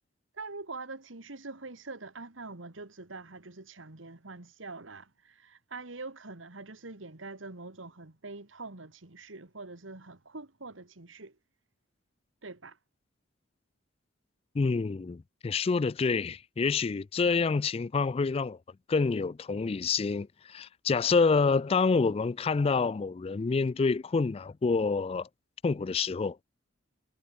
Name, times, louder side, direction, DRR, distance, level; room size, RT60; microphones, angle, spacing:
voice 1, 0.3-11.3 12.4-12.8, right 3 dB, 85° right, 2.1 m, -44 dB
voice 2, 14.5-18.6 18.9-25.3 25.6-26.4, left 4 dB, 30° left, 0.3 m, -27 dB
head